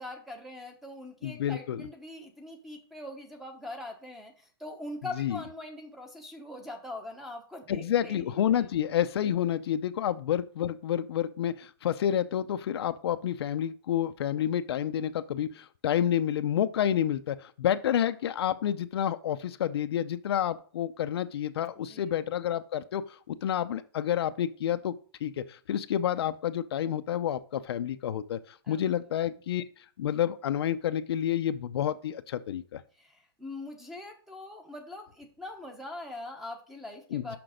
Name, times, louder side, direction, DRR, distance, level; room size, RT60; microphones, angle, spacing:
voice 1, 0.0-8.7 21.8-22.1 28.6-28.8 32.9-37.4, left 2 dB, ahead, 5 dB, 1.0 m, -42 dB
voice 2, 1.2-1.8 5.2-5.4 7.7-23.0 23.3-24.9 25.2-29.6 30.0-32.8 37.1-37.4, left 10 dB, 75° left, 10 dB, 0.6 m, -29 dB
6.1 x 5.9 x 5.0 m, 0.42 s
hypercardioid pair, 160°, 13 cm